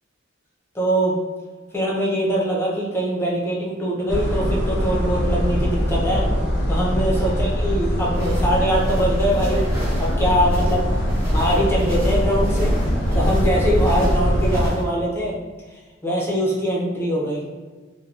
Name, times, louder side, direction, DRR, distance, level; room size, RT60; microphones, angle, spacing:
voice 1, 0.7-1.2 1.7-6.3 6.7-9.7 10.0-10.9 11.3-12.7 13.1-15.4 16.0-17.4, equal, 10° left, -5 dB, 0.5 m, -22 dB
sound 1, 4.1-14.7, equal, 60° left, 0.6 m, -22 dB
sound 2, 8.1-14.8, equal, 15° right, 1.1 m, -31 dB
3.4 x 2.2 x 2.4 m, 1.3 s
head